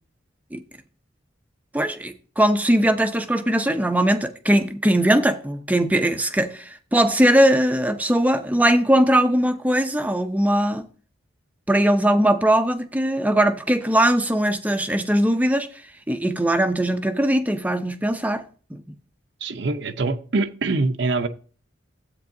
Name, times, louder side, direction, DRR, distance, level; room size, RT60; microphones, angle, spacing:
voice 1, 1.7-10.9 11.7-15.7 16.1-18.4 18.7-18.8, right 1 dB, 10° right, 0.5 m, -20 dB
voice 2, 19.4-21.3, right 3 dB, 60° right, 0.6 m, -24 dB
13.5 x 8.2 x 2.6 m
head